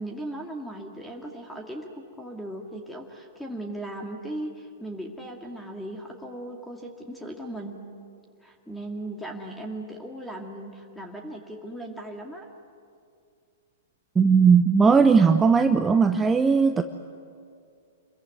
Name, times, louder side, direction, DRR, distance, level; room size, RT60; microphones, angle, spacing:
voice 1, 0.0-7.8 8.4-12.5, right 1 dB, 5° left, 2 dB, 2.2 m, -37 dB
voice 2, 14.2-16.8, right 5 dB, 15° right, 8 dB, 0.8 m, -18 dB
27.5 x 22.5 x 9.5 m, 2.3 s
figure-of-eight pair, 105°, 0 cm